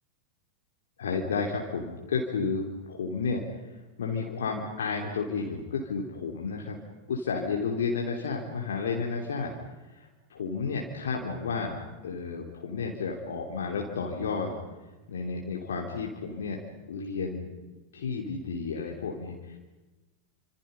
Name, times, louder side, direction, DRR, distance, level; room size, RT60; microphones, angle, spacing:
voice 1, 1.0-3.4 3.7-6.8 7.1-9.5 9.9-14.5 15.1-16.6 16.9-17.5 17.9-19.6, left 5 dB, 65° left, 0 dB, 3.2 m, -32 dB
29.5 x 26.0 x 5.6 m, 1.2 s
figure-of-eight pair, 90°, 0 cm